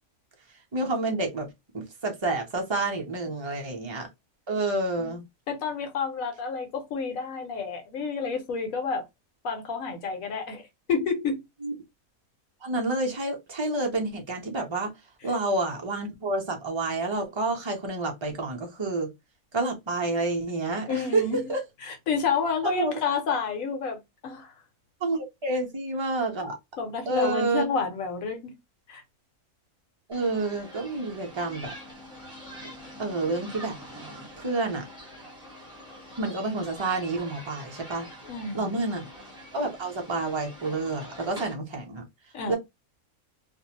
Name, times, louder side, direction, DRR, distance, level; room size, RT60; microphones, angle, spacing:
voice 1, 0.7-1.5 1.7-4.1 4.5-5.2 11.6-11.7 12.6-14.9 15.2-19.1 19.5-21.6 22.6-22.9 25.0-26.5 27.1-27.6 30.1-31.7 33.0-33.8 34.4-34.9 36.2-38.1 38.5-39.1 39.5-42.0 42.5-42.6, right 2 dB, 40° right, 0.4 m, -29 dB
voice 2, 5.5-9.1 9.4-10.6 10.9-11.4 20.9-21.4 21.8-24.5 26.8-28.5 28.9-29.0 38.3-38.7 42.3-42.6, left 5 dB, 70° left, 1.1 m, -30 dB
sound 1, 30.1-41.5, equal, 5° right, 0.8 m, -45 dB
2.5 x 2.1 x 2.7 m
omnidirectional pair, 1.5 m